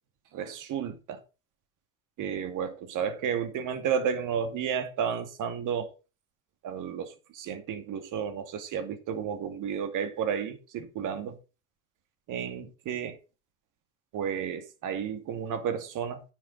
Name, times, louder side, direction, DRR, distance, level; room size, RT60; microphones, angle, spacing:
voice 1, 0.3-1.2 2.2-5.9 6.6-11.4 12.3-13.2 14.1-16.2, right 7 dB, 45° right, 2.4 m, -32 dB
9.7 x 7.4 x 5.2 m
figure-of-eight pair, 65°, 42 cm